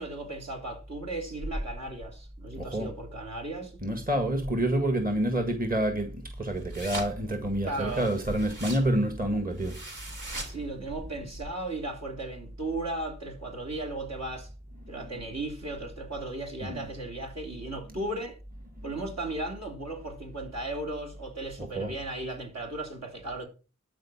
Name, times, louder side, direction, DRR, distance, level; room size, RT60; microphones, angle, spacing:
voice 1, 0.0-3.7 7.6-8.1 10.3-14.5 14.9-18.4 18.8-23.5, right 2 dB, 60° right, 3.4 m, -36 dB
voice 2, 2.5-2.9 3.8-9.8 14.8-15.1 16.6-16.9 21.6-21.9, right 1 dB, 30° right, 1.7 m, -28 dB
sound 1, 6.2-11.5, right 1 dB, 85° right, 3.9 m, -41 dB
12.5 x 4.7 x 7.2 m
wide cardioid pair, 80°, 30 cm